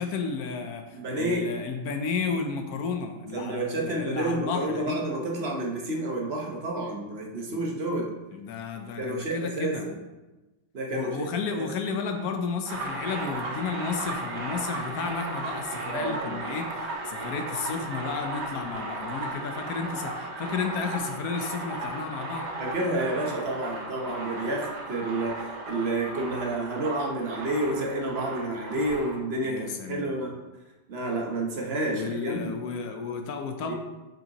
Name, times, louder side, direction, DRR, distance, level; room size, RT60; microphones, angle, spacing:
voice 1, 0.0-5.0 7.5-7.6 8.3-9.9 10.9-22.5 29.4-30.1 31.9-33.7, left 5 dB, 65° left, 5 dB, 1.0 m, -32 dB
voice 2, 0.9-1.5 3.3-8.1 9.0-9.9 10.7-11.3 11.6-11.7 15.9-16.4 22.6-30.4 30.9-32.6 33.7-33.8, right 2 dB, 45° right, 0 dB, 0.8 m, -30 dB
sound 1, 12.6-29.2, right 2 dB, 65° right, 1.6 m, -35 dB
7.3 x 5.3 x 2.9 m, 1.1 s
omnidirectional pair, 2.0 m